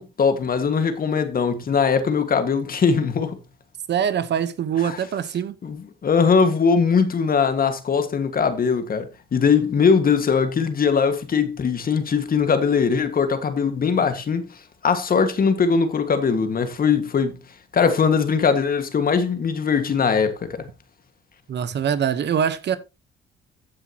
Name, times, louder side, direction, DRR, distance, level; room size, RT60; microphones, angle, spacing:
voice 1, 0.0-3.4 4.8-5.0 5.6-14.4 14.8-17.4 17.7-20.7, left 5 dB, 45° left, 1.9 m, -21 dB
voice 2, 3.9-5.6 21.5-22.8, right 8 dB, 60° right, 1.1 m, -23 dB
15.0 x 6.2 x 3.0 m
cardioid pair, 90°, 20 cm